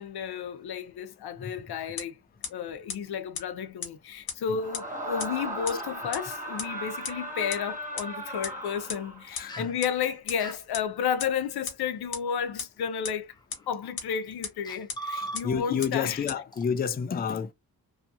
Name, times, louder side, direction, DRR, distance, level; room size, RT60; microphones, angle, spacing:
voice 1, 0.0-2.2 2.5-13.3 13.7-16.2, left 7 dB, 90° left, 0.6 m, -32 dB
sound 1, 2.0-2.1 2.4-2.5 2.9-3.0 3.3-3.4 3.8-3.9 4.3-4.4 4.7-4.8 5.2-5.3 5.7-5.8 6.1-6.2 6.6-6.7 7.0-7.1 7.5-7.6 8.0-8.1 8.4-8.5 8.9-9.0 9.3-9.4 9.8-9.9 10.3-10.4 10.7-10.8 11.2-11.3 11.6-11.7 12.1-12.2 12.6-12.7 13.0-13.1 13.5-13.6 14.0-14.1 14.4-14.5 14.9-15.0 15.3-15.4 15.8-15.9 16.3-16.4, left 6 dB, 70° left, 0.9 m, -32 dB
Screaming, 4.5-9.4, right 1 dB, 20° right, 1.1 m, -37 dB
voice 2, 9.3-9.7 15.1-17.5, left 7 dB, 25° left, 0.3 m, -30 dB
sound 2, 9.5-9.7 10.4-10.6 12.4-12.5 13.3-13.6 14.3-14.4 14.6-15.8 16.1-16.2 16.5-16.7, right 2 dB, 10° left, 0.8 m, -38 dB
2.7 x 2.4 x 2.6 m
cardioid pair, 70°, 37 cm